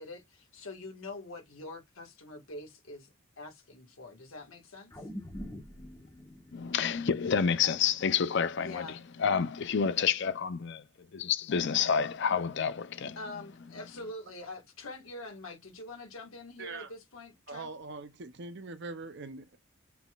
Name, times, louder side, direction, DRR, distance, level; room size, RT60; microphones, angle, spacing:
voice 1, 0.0-3.1 3.4-4.9 8.6-9.0 13.1-17.7, left 2 dB, 75° left, 1.7 m, -44 dB
sound 1, 4.9-9.4 9.8-9.9, equal, 15° left, 1.3 m, -47 dB
voice 2, 6.5-8.9 9.2-10.8 11.1-13.2, left 7 dB, 55° left, 0.5 m, -28 dB
voice 3, 16.6-16.9 17.5-19.6, right 3 dB, 55° right, 0.6 m, -42 dB
5.7 x 3.9 x 2.4 m
head